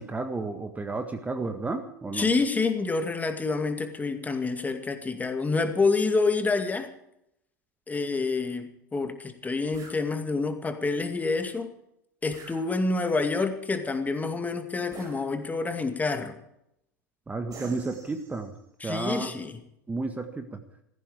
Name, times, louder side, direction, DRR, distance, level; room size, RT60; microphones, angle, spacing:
voice 1, 0.0-2.3 17.3-18.5 18.8-19.3 19.9-20.5, right 3 dB, 15° right, 7 dB, 1.7 m, -32 dB
voice 2, 2.1-6.9 7.9-11.7 12.2-16.4 18.8-19.6, left 3 dB, 15° left, 7 dB, 2.2 m, -27 dB
sound 1, 9.7-10.0 12.3-13.1 14.9-15.7 17.5-18.6, right 3 dB, 35° right, 5.6 m, -48 dB
17.0 x 15.0 x 5.0 m, 0.78 s
figure-of-eight pair, 80°, 10 cm